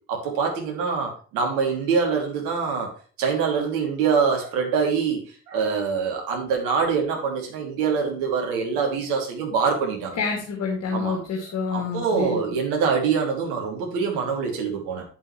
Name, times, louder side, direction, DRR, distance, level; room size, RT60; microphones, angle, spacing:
voice 1, 0.1-2.9 3.2-10.2 10.9-11.2 11.7-15.0, right 5 dB, 65° right, 1 dB, 3.0 m, -24 dB
voice 2, 10.2-12.4, left 5 dB, 50° left, -1 dB, 2.6 m, -27 dB
9.6 x 8.9 x 3.3 m, 0.40 s
figure-of-eight pair, 45°, 35 cm